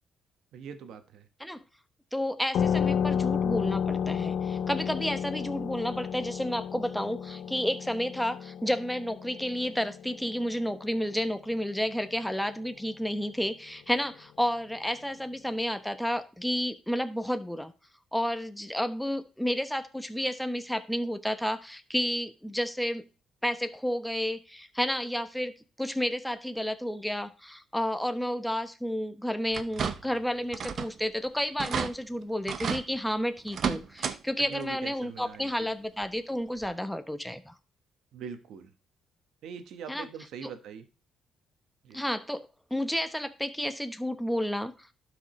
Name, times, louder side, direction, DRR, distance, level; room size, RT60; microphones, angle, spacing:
voice 1, 0.5-1.3 34.5-35.7 38.1-38.7 39.4-40.9 41.8-42.0, right 7 dB, 80° right, 9 dB, 1.2 m, -42 dB
voice 2, 2.1-17.7 18.1-23.0 23.4-37.5 39.9-40.1 40.4-40.5 41.9-44.7, equal, 5° left, 10 dB, 1.0 m, -31 dB
sound 1, 2.5-11.7, left 8 dB, 70° left, 0.4 m, -32 dB
sound 2, 29.5-30.2 30.5-31.0 31.3-31.4 31.6-31.9 32.5-32.8 33.5-34.2 34.5-34.6 36.0-36.1 36.6-36.7, right 7 dB, 55° right, 0.8 m, -32 dB
12.0 x 4.9 x 3.1 m, 0.33 s
cardioid pair, 90°, 0 cm